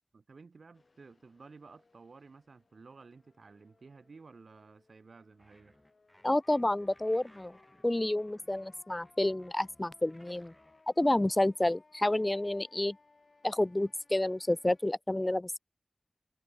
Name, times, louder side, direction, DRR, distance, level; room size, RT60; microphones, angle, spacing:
voice 1, 0.1-5.8 13.8-13.9, right 4 dB, 90° right, 2.8 m, -54 dB
sound 1, 0.7-15.0, left 3 dB, 65° left, 4.0 m, -65 dB
sound 2, 5.4-10.8, equal, 5° left, 5.4 m, -64 dB
voice 2, 6.2-7.6 7.8-10.5 11.0-13.0 13.4-15.6, left 1 dB, 25° left, 0.4 m, -29 dB
wide cardioid pair, 65°, 0 cm